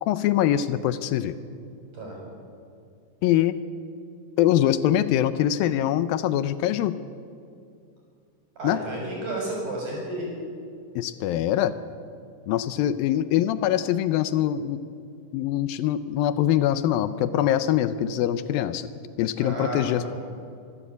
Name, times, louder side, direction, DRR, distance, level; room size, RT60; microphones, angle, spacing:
voice 1, 0.0-1.4 3.2-3.6 4.4-6.9 8.6-8.8 11.0-11.7 12.5-14.8 15.3-18.9 19.2-20.1, left 11 dB, 80° left, 13 dB, 2.4 m, -23 dB
voice 2, 8.6-10.3 19.4-20.1, right 1 dB, 60° right, -2 dB, 7.8 m, -32 dB
25.5 x 12.5 x 8.4 m, 2.4 s
omnidirectional pair, 4.3 m